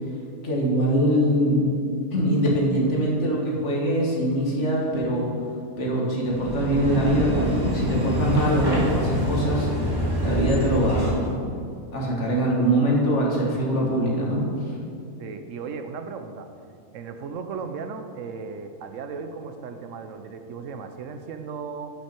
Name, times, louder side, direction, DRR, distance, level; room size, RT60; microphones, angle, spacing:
voice 1, 0.4-1.7 2.1-5.3 5.8-9.7 10.2-11.4 11.9-14.4, equal, 65° left, -3 dB, 1.9 m, -23 dB
sound 1, 6.2-11.3, equal, 20° right, 1.5 m, -26 dB
voice 2, 15.2-16.5 16.9-21.9, right 5 dB, 75° right, 7 dB, 1.0 m, -36 dB
8.9 x 6.0 x 4.5 m, 2.5 s
omnidirectional pair, 1.3 m